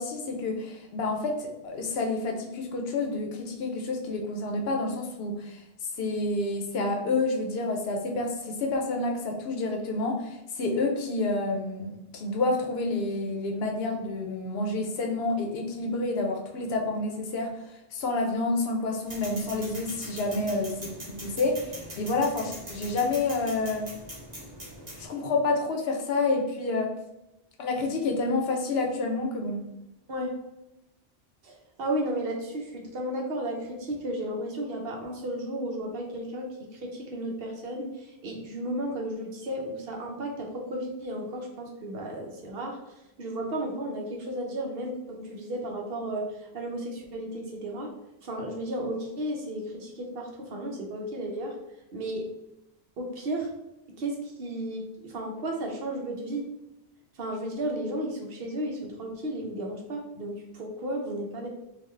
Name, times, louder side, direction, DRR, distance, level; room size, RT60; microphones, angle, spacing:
voice 1, 0.0-5.6 6.0-17.5 17.9-23.9 25.0-26.9 27.6-29.6, left 3 dB, 75° left, 2 dB, 0.9 m, -29 dB
sound 1, 19.1-25.1, right 1 dB, 40° right, 1.3 m, -42 dB
voice 2, 31.4-42.8 43.2-47.9 48.2-51.6 51.9-52.3 53.0-53.5 54.0-56.5 57.2-61.5, right 1 dB, 70° right, 1 dB, 0.9 m, -33 dB
3.9 x 2.4 x 3.2 m, 0.91 s
omnidirectional pair, 1.1 m